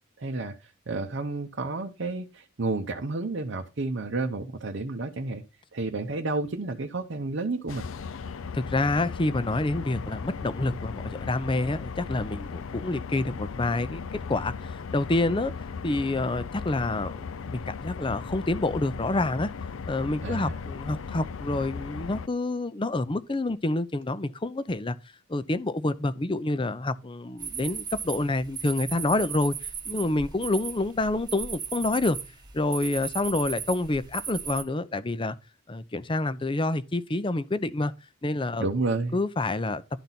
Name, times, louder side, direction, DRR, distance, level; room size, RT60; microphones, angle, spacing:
voice 1, 0.2-5.4 5.7-7.8 20.2-20.5 38.6-39.2, right 3 dB, 60° right, 0.8 m, -31 dB
sound 1, 7.7-22.3, left 5 dB, 75° left, 0.5 m, -37 dB
voice 2, 8.5-15.5 15.8-19.5 19.9-25.0 25.3-32.2 32.5-35.4 35.7-37.9 38.2-38.7 39.1-39.8, left 2 dB, 25° left, 0.6 m, -28 dB
sound 2, 27.4-34.6, right 6 dB, 20° right, 1.1 m, -37 dB
12.0 x 4.0 x 5.8 m
head